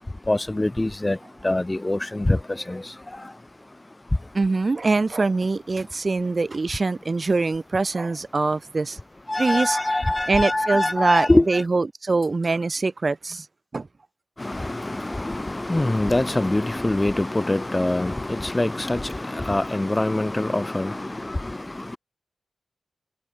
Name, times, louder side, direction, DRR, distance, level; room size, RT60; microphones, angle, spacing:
voice 1, 0.3-1.2 1.4-2.8 9.3-11.6 14.4-22.0, left 2 dB, 20° left, 0.4 m, -24 dB
voice 2, 4.3-9.0 9.4-9.8 10.3-13.5 13.7-13.9, right 3 dB, 40° right, 0.4 m, -23 dB
cardioid pair, 60°, 0 cm